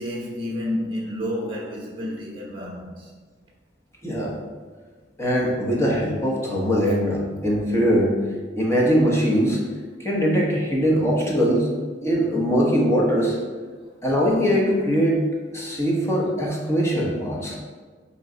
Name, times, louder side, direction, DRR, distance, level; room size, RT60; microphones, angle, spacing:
voice 1, 0.0-2.9, left 1 dB, 30° right, -3 dB, 0.9 m, -30 dB
voice 2, 4.0-4.3 5.2-8.1 8.6-9.6 10.0-11.7 12.0-13.4 14.0-15.2 15.5-17.6, equal, 15° left, -4 dB, 0.9 m, -21 dB
4.5 x 3.1 x 3.8 m, 1.5 s
head